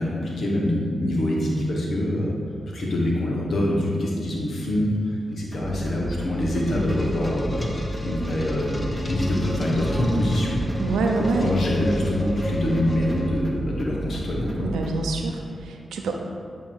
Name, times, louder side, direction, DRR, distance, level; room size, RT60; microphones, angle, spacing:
voice 1, 0.0-2.4 2.7-7.6 8.0-10.6 11.3-14.6, left 1 dB, 70° left, -3 dB, 1.4 m, -25 dB
sound 1, 5.5-15.2, right 1 dB, 5° right, 0.9 m, -34 dB
sound 2, 6.2-13.7, left 1 dB, 20° left, 0.9 m, -31 dB
voice 2, 10.8-11.6 14.6-16.2, right 3 dB, 90° right, 3 dB, 0.6 m, -26 dB
8.8 x 3.0 x 4.7 m, 2.3 s
supercardioid pair, 45°, 0 cm